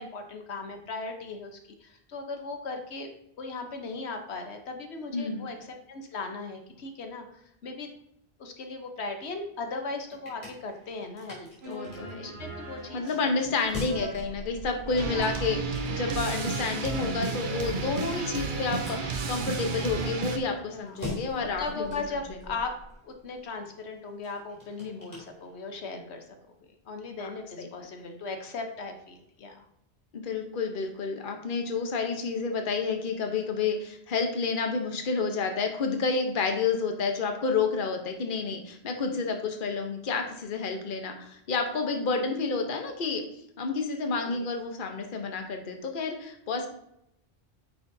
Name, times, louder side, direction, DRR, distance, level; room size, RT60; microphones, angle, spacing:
voice 1, 0.0-3.1 3.4-7.9 8.4-11.9 12.2-13.4 15.0-15.4 20.7-21.1 21.6-22.8 23.0-29.6 42.2-42.3 44.3-44.5, left 3 dB, 85° left, 5 dB, 1.2 m, -38 dB
voice 2, 5.1-5.5 11.7-12.3 12.9-21.9 24.8-25.0 27.1-27.3 27.6-27.7 30.1-43.2 43.6-46.7, left 4 dB, 55° left, 4 dB, 1.1 m, -30 dB
sound 1, 9.7-25.9, left 1 dB, 40° left, 2.9 m, -45 dB
sound 2, 11.6-20.1, right 3 dB, 75° right, 1.3 m, -42 dB
sound 3, 15.0-20.4, right 4 dB, 55° right, 0.9 m, -32 dB
9.0 x 6.2 x 2.7 m, 0.78 s
omnidirectional pair, 1.1 m